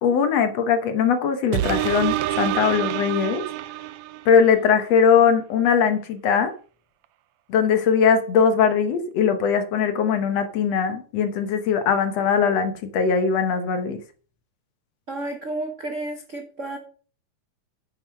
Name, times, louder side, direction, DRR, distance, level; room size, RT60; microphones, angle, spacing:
voice 1, 0.0-3.4 4.3-6.5 7.5-14.0, left 6 dB, 65° left, 2.0 m, -20 dB
sound 1, 1.5-4.5 5.0-5.1, right 13 dB, 75° right, 1.8 m, -27 dB
voice 2, 15.1-16.8, right 2 dB, 55° right, 0.8 m, -31 dB
9.3 x 7.1 x 5.3 m
omnidirectional pair, 3.4 m